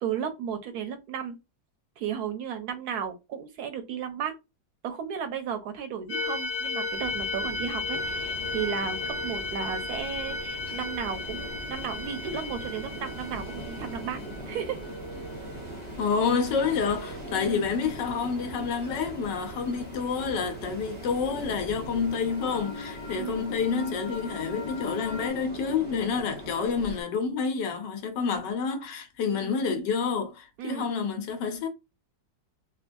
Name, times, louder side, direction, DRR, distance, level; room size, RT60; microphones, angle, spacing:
voice 1, 0.0-1.4 2.0-4.3 4.8-14.2 14.5-14.8 17.3-17.7 23.2-23.5 29.3-29.6 30.6-30.9, right 7 dB, 70° right, 1.0 m, -34 dB
sound 1, 6.1-15.7 21.8-25.3, left 3 dB, 60° left, 1.1 m, -35 dB
sound 2, 6.9-22.1, right 2 dB, 35° right, 0.4 m, -44 dB
Ocean, 7.9-27.0, right 1 dB, 10° left, 0.6 m, -42 dB
voice 2, 16.0-31.7, left 5 dB, 80° left, 1.4 m, -28 dB
3.8 x 2.2 x 2.5 m
omnidirectional pair, 1.9 m